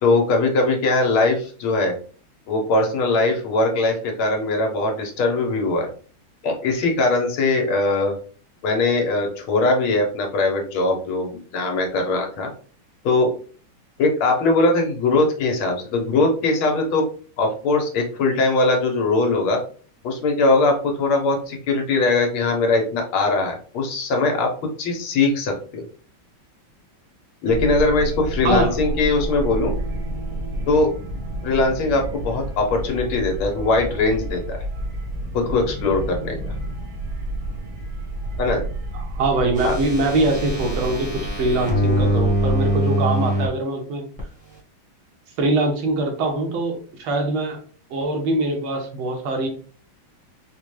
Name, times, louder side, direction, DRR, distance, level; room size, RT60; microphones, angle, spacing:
voice 1, 0.0-2.0 2.5-5.9 6.4-8.1 8.6-12.5 13.0-13.3 14.0-17.0 17.4-19.6 20.0-25.8 27.4-29.7 30.7-30.9 31.4-34.6 35.3-36.5 38.4-38.7 39.6-39.7, left 3 dB, 80° left, 2 dB, 1.8 m, -21 dB
sound 1, 27.4-42.8, right 1 dB, 60° right, 1.1 m, -30 dB
voice 2, 28.4-28.7 38.9-44.0 45.4-47.6 47.9-49.5, right 2 dB, 80° right, 2 dB, 1.7 m, -23 dB
sound 2, 39.6-43.5 44.2-44.3, equal, 5° right, 0.8 m, -23 dB
4.6 x 2.2 x 3.1 m, 0.41 s
omnidirectional pair, 2.3 m